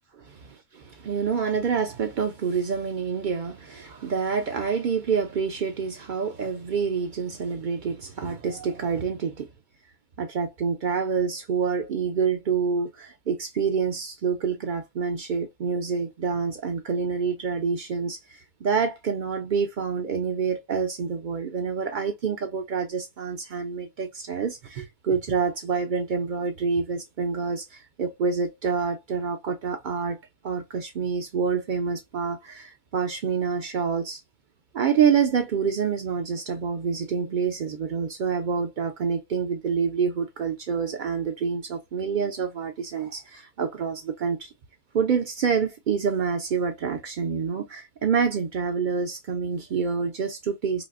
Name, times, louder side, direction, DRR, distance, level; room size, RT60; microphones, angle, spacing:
voice 1, 0.2-9.5 10.2-30.2 30.4-34.2 34.7-44.5 44.9-50.9, right 6 dB, 70° right, 0.4 m, -27 dB
5.0 x 2.0 x 2.4 m
omnidirectional pair, 1.4 m